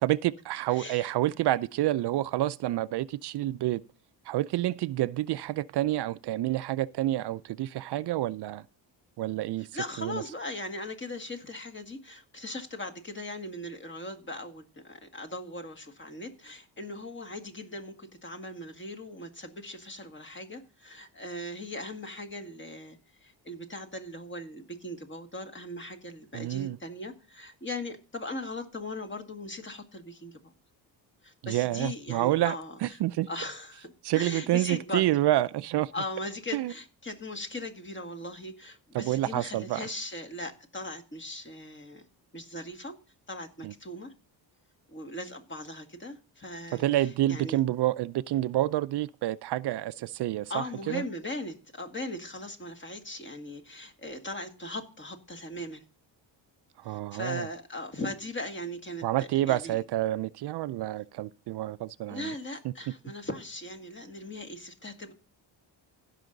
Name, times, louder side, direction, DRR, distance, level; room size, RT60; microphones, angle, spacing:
voice 1, 0.0-3.8 4.3-8.6 9.2-9.7 10.0-10.2 26.3-26.8 31.4-32.5 32.8-33.3 34.0-35.9 36.5-36.7 38.9-39.9 43.6-43.7 46.7-51.0 56.8-57.5 59.0-62.3 62.6-62.7, right 15 dB, 65° right, 0.5 m, -28 dB
voice 2, 0.7-1.1 9.6-30.5 31.2-33.0 33.3-35.1 35.9-42.0 42.3-43.0 43.3-44.1 44.9-46.8 47.3-47.6 50.5-55.8 56.9-59.1 59.5-59.8 62.1-65.1, left 1 dB, 25° left, 1.8 m, -39 dB
16.0 x 5.6 x 3.9 m
cardioid pair, 95°, 45 cm